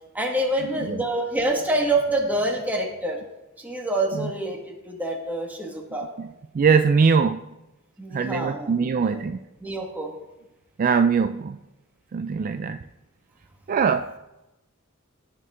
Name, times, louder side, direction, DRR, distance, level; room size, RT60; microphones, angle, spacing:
voice 1, 0.1-3.2 3.6-4.6 4.9-6.1 8.0-9.2 9.6-10.1 12.4-12.6, right 1 dB, 10° right, 0 dB, 1.9 m, -26 dB
voice 2, 6.5-7.4 8.1-9.4 10.8-11.6 12.1-12.8 13.7-14.2, right 5 dB, 40° right, 10 dB, 0.3 m, -21 dB
17.5 x 6.9 x 3.7 m, 0.99 s
head